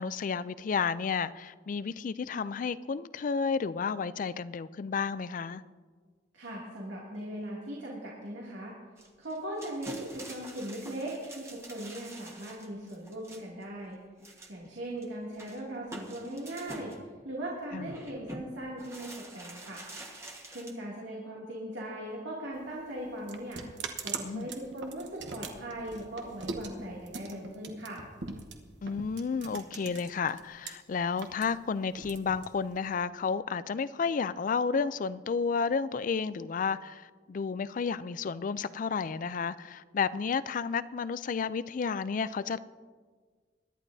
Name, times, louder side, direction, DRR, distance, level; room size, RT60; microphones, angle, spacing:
voice 1, 0.0-5.6 17.7-17.9 24.2-24.5 28.8-42.6, left 5 dB, 45° left, 16 dB, 0.3 m, -31 dB
voice 2, 6.3-8.7 9.2-14.0 14.5-16.9 17.2-19.8 20.5-23.6 24.0-28.0, right 1 dB, 90° right, -5 dB, 2.5 m, -39 dB
sound 1, 9.0-13.6 14.2-14.7 15.0-15.1 15.3-17.0 17.7-18.4 18.8-20.7, right 1 dB, 15° right, 1.3 m, -46 dB
sound 2, 22.5-30.7 31.0-32.9, right 4 dB, 70° right, 1.1 m, -41 dB
22.5 x 11.0 x 2.7 m, 1.5 s
head